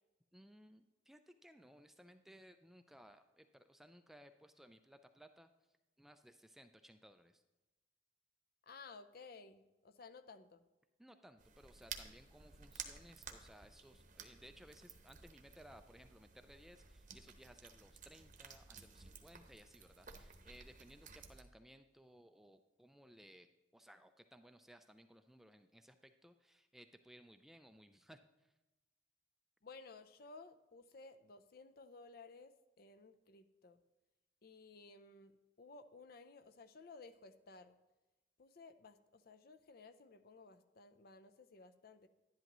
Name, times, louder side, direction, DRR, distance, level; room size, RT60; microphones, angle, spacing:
voice 1, 0.3-5.5 6.0-7.4 11.0-23.5 23.7-28.5, equal, ahead, 8 dB, 0.3 m, -61 dB
voice 2, 8.6-10.7 29.6-33.8 34.4-37.8 38.4-42.1, left 4 dB, 50° left, 10 dB, 0.5 m, -57 dB
sound 1, 11.4-21.4, right 6 dB, 45° right, 0.9 m, -54 dB
11.0 x 10.5 x 3.0 m, 1.1 s
head